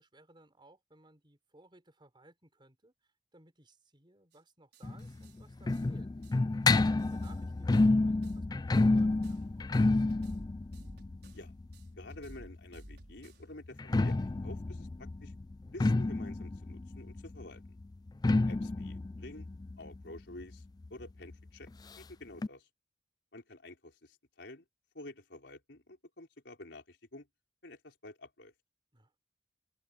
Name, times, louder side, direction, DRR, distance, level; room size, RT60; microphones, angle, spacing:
voice 1, 0.0-6.1 7.1-10.4 28.9-29.2, right 2 dB, 25° right, 5.0 m, -61 dB
sound 1, 4.3-4.4 4.7-5.4 5.7-5.9 6.2-6.4 6.7-7.4 7.7-7.9 8.2-9.4 9.7-11.4 11.7-13.4, right 1 dB, 65° right, 6.1 m, -53 dB
sound 2, 4.8-12.5 13.7-21.0 21.3-21.4 21.6-21.7 22.4-22.5, left 2 dB, 20° left, 0.3 m, -30 dB
voice 2, 12.0-15.3 15.7-17.6 18.5-19.5 19.8-20.6 20.9-22.7 23.3-24.7 24.9-27.3 27.6-28.5, left 2 dB, 75° left, 4.6 m, -50 dB
open air
head